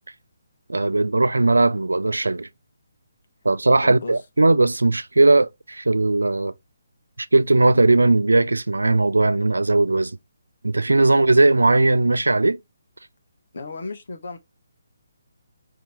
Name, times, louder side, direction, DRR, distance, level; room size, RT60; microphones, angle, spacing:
voice 1, 0.7-2.5 3.4-6.5 7.2-10.2 10.6-12.6, right 2 dB, 75° right, 0.4 m, -18 dB
voice 2, 3.8-4.2 13.5-14.4, left 3 dB, 55° left, 1.0 m, -34 dB
4.8 x 2.9 x 3.0 m
figure-of-eight pair, 140°, 0 cm